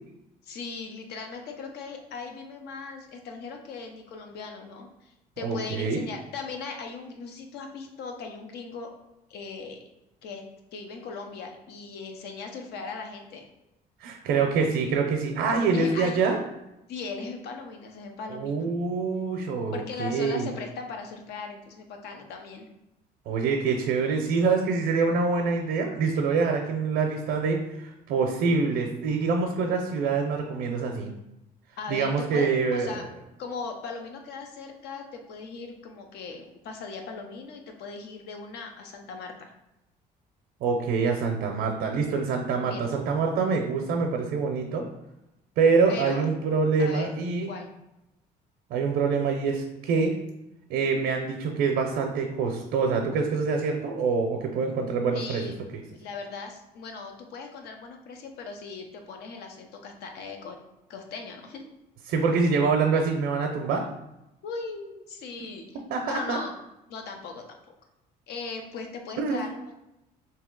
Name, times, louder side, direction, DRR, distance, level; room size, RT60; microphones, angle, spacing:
voice 1, 0.4-8.9 9.3-9.8 10.2-10.4 10.7-13.4 15.7-16.2 16.9-18.7 19.7-22.7 31.8-39.5 42.6-42.9 45.9-46.2 46.8-47.1 47.5-47.7 55.1-55.7 56.0-60.6 60.9-61.6 64.4-65.6 66.0-66.5 66.9-67.5 68.3-69.8, left 4 dB, 75° left, 4 dB, 0.7 m, -38 dB
voice 2, 5.4-6.0 14.0-16.4 18.3-20.5 23.3-31.1 31.9-33.0 40.6-44.8 45.6-47.5 48.7-50.2 50.7-55.5 62.1-63.8 65.9-66.4 69.2-69.5, right 4 dB, 80° right, 2 dB, 0.5 m, -25 dB
3.1 x 2.8 x 3.7 m, 0.90 s
cardioid pair, 110°, 17 cm